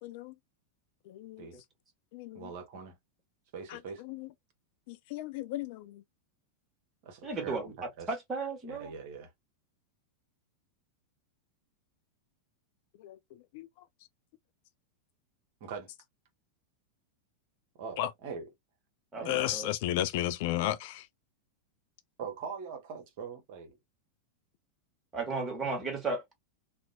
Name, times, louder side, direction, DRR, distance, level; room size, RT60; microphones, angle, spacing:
voice 1, 0.0-0.3 1.1-1.5 2.1-2.5 3.7-3.8 4.0-4.3 4.9-6.0 13.0-13.2 13.5-13.7 18.0-18.1 19.3-21.1, left 13 dB, 50° left, 0.3 m, -34 dB
voice 2, 2.3-3.0 3.5-4.0 7.0-8.1 8.6-9.3 15.6-15.9 17.8-18.5 19.1-19.6 22.2-23.8, right 5 dB, 50° right, 0.7 m, -42 dB
voice 3, 7.2-8.9 19.1-19.7 25.1-26.3, right 3 dB, 20° right, 1.2 m, -35 dB
2.5 x 2.1 x 2.6 m
figure-of-eight pair, 90°, 0 cm